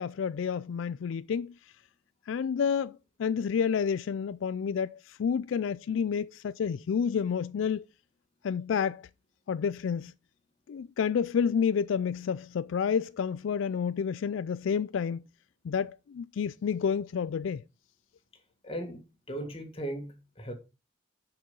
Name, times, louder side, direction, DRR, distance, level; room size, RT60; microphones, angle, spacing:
voice 1, 0.0-1.5 2.3-7.9 8.4-9.1 9.5-10.1 10.7-15.2 15.6-17.6, left 7 dB, 85° left, 0.3 m, -29 dB
voice 2, 18.6-20.5, right 1 dB, 30° left, 1.8 m, -38 dB
6.6 x 6.3 x 5.3 m
head